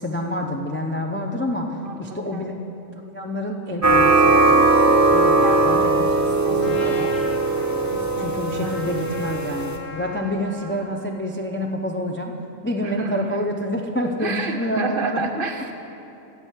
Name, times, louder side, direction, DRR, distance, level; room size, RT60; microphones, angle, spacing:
voice 1, 0.0-2.5 3.1-6.1 6.5-7.1 7.7-12.3 12.6-15.2, left 1 dB, 20° left, 1 dB, 0.3 m, -28 dB
voice 2, 1.8-2.5 5.3-7.2 7.9-8.8 12.8-13.4 14.2-15.7, right 3 dB, 55° right, 5 dB, 0.7 m, -31 dB
sound 1, 3.8-9.8, right 3 dB, 20° right, 0.6 m, -19 dB
Trumpet, 6.6-10.9, left 3 dB, 80° left, 1.3 m, -37 dB
10.0 x 6.8 x 8.2 m, 2.8 s
omnidirectional pair, 1.3 m